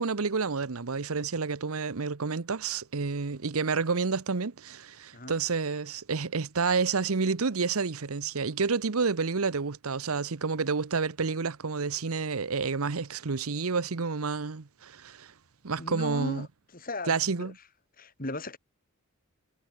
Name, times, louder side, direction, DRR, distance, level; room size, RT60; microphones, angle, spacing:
voice 1, 0.0-15.3 15.6-16.5 17.1-17.5, right 4 dB, 85° right, 0.9 m, -29 dB
voice 2, 15.8-17.5 18.0-18.6, left 2 dB, 40° left, 4.6 m, -37 dB
head